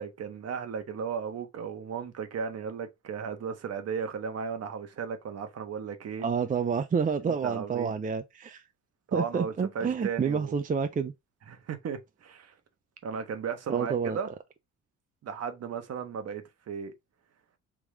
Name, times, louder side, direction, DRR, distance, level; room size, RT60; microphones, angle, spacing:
voice 1, 0.0-6.2 7.2-7.9 9.1-10.5 11.5-12.5 13.0-14.3 15.2-16.9, right 6 dB, 55° right, 1.1 m, -35 dB
voice 2, 6.2-8.6 9.1-11.1 13.7-14.2, right 6 dB, 25° right, 0.5 m, -29 dB
3.6 x 3.0 x 4.8 m
cardioid pair, 90°, 30 cm